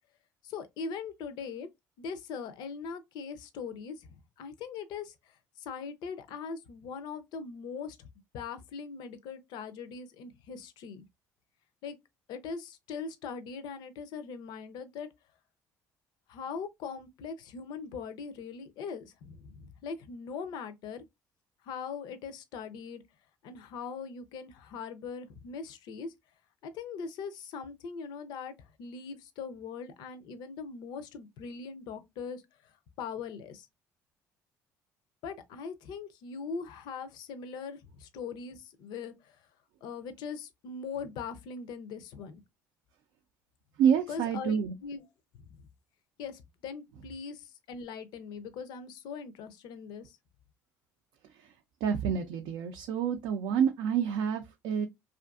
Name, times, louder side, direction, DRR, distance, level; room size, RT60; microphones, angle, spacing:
voice 1, 0.4-1.7 2.0-8.1 8.3-11.0 11.8-12.0 12.3-15.1 16.3-21.0 21.6-23.0 23.4-26.1 26.6-33.7 35.2-39.4 39.8-42.4 44.1-45.1 45.3-45.5 46.2-50.2, left 5 dB, 70° left, 0.5 m, -41 dB
voice 2, 43.8-44.8 51.8-54.9, right 7 dB, 75° right, 0.4 m, -28 dB
2.5 x 2.4 x 2.3 m
supercardioid pair, 70°, 8 cm